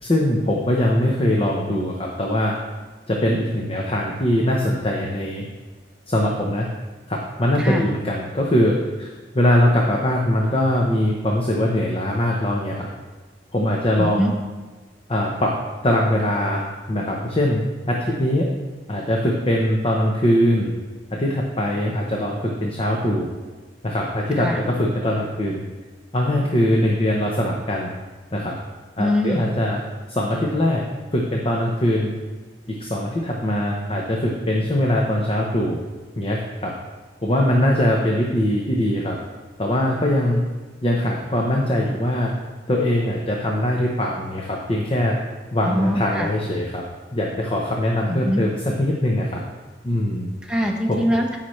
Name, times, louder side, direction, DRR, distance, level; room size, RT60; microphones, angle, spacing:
voice 1, 0.0-2.5 3.1-5.4 6.1-6.7 7.1-9.1 9.3-12.9 13.5-14.3 15.1-15.5 15.8-17.6 17.9-18.5 18.9-20.7 21.1-23.3 23.8-25.6 26.1-27.9 28.3-28.5 29.0-29.8 30.1-30.8 31.1-32.1 32.7-35.8 36.2-36.7 37.2-39.2 39.6-40.4 40.8-42.3 42.7-45.2 45.5-46.8 47.1-49.4 49.8-50.3 50.9-51.0, left 1 dB, 30° left, -1 dB, 0.8 m, -21 dB
voice 2, 14.0-14.3 24.4-24.6 29.0-29.5 45.6-46.3 48.1-48.4 50.4-51.4, equal, 5° right, 0 dB, 0.9 m, -23 dB
15.0 x 5.7 x 3.2 m, 1.3 s
head